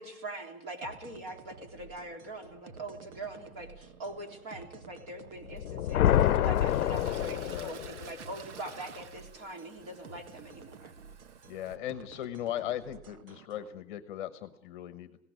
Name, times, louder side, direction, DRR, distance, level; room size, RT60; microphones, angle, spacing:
voice 1, 0.0-11.0, right 2 dB, 30° right, 5 dB, 3.6 m, -43 dB
sound 1, 0.8-13.7, right 5 dB, 85° right, 1.6 m, -52 dB
Toilet flush, 4.9-5.0 5.6-11.8, right 7 dB, 55° right, 1.4 m, -50 dB
sound 2, 5.5-8.1, left 12 dB, 85° left, 0.8 m, -27 dB
voice 2, 11.5-15.2, left 11 dB, 35° left, 12 dB, 1.2 m, -38 dB
20.0 x 17.5 x 9.5 m, 0.76 s
hypercardioid pair, 165°, 42 cm